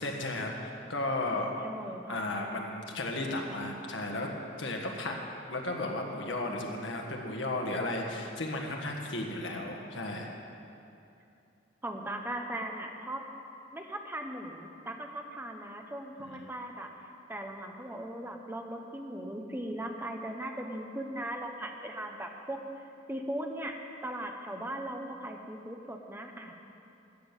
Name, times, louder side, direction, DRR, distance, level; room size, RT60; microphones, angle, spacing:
voice 1, 0.0-1.5 2.1-4.3 4.6-5.2 5.5-10.3 16.2-16.5, left 2 dB, 75° left, 1 dB, 1.6 m, -34 dB
voice 2, 1.6-2.2 11.8-13.3 13.7-22.6 23.1-26.6, right 1 dB, 10° right, 3 dB, 0.9 m, -39 dB
12.5 x 6.9 x 9.1 m, 2.7 s
head